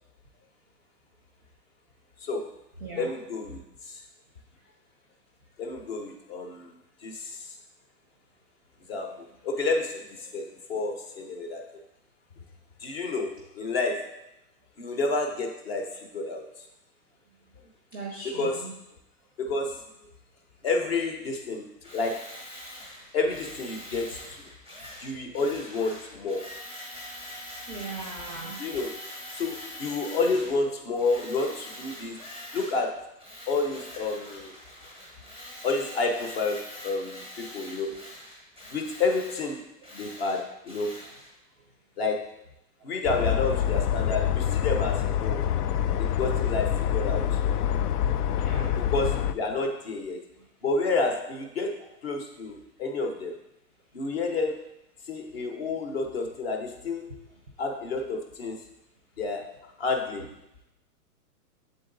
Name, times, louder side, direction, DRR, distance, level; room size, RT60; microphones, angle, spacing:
voice 1, 2.2-2.5 3.0-4.0 5.6-6.7 7.0-7.6 8.9-11.6 12.8-14.2 14.8-16.5 18.2-18.7 19.4-19.8 20.6-22.3 23.1-24.4 25.0-26.5 28.6-29.0 29.3-32.2 32.5-33.1 33.5-34.5 35.6-38.0 38.7-39.7 39.9-41.0 42.0-42.4 42.8-45.4 46.0-47.4 48.8-50.2 50.6-53.4 53.9-54.6 55.1-57.3 57.6-58.6 59.2-60.3, left 3 dB, 40° left, 4 dB, 0.8 m, -30 dB
voice 2, 17.9-18.7 27.7-28.6 42.8-42.9 48.4-48.7, right 3 dB, 15° right, -2 dB, 0.5 m, -38 dB
Tools, 21.8-30.6 31.0-32.9 33.2-41.3, left 1 dB, 10° left, 0.9 m, -43 dB
sound 1, 43.1-49.3, left 10 dB, 75° left, 0.5 m, -26 dB
7.6 x 3.9 x 3.8 m, 0.86 s
hypercardioid pair, 170°, 47 cm